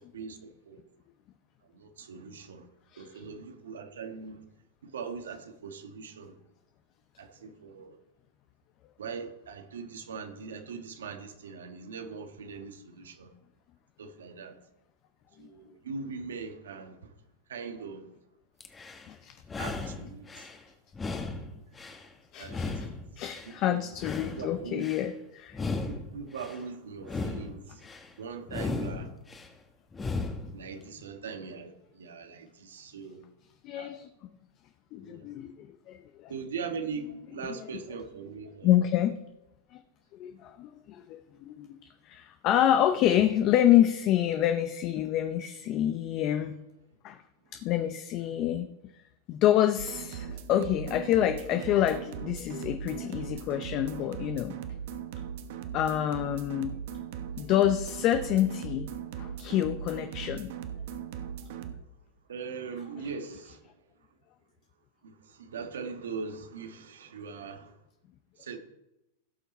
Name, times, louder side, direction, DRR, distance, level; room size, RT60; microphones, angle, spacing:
voice 1, 0.1-0.8 1.7-2.7 3.0-4.4 4.8-6.4 7.2-8.0 9.0-13.3 14.0-14.6 15.4-17.1 17.5-18.1 19.6-20.5 21.9-22.0 22.4-22.8 23.5-23.8 24.2-24.9 25.9-27.8 28.2-29.1 30.5-33.2 33.7-33.9 35.0-35.3 36.3-38.7 62.3-63.6 65.0-67.7 68.4-68.6, right 5 dB, 90° right, 1.4 m, -41 dB
sound 1, 18.6-19.1 19.4-20.6 20.9-22.1 22.4-23.6 23.9-25.1 25.5-26.6 27.0-28.1 28.5-29.5 29.9-30.6, left 3 dB, 15° left, 1.3 m, -36 dB
voice 2, 22.3-22.9 23.2-25.6 33.6-34.1 34.9-36.3 37.5-37.7 38.6-39.2 39.7-39.8 40.1-41.8 42.0-46.6 47.0-47.2 47.5-48.7 49.3-54.5 55.7-56.7 57.4-58.9 59.2-60.5, left 11 dB, 40° left, 0.7 m, -27 dB
sound 2, 49.8-61.7, right 8 dB, 65° right, 1.1 m, -39 dB
16.5 x 5.7 x 4.2 m
hypercardioid pair, 125°, 0 cm